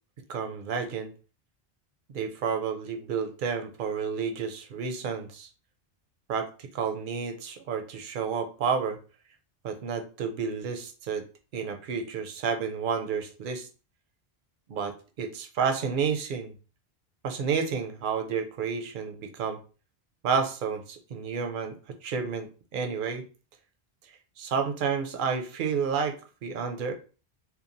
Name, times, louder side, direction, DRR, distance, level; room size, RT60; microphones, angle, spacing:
voice 1, 0.3-1.1 2.1-5.5 6.3-9.0 9.6-11.3 11.5-13.7 14.7-16.5 17.2-19.6 20.2-22.5 22.7-23.2 24.4-27.0, right 6 dB, 60° right, 6 dB, 0.6 m, -30 dB
2.9 x 2.2 x 2.5 m, 0.35 s
omnidirectional pair, 1.0 m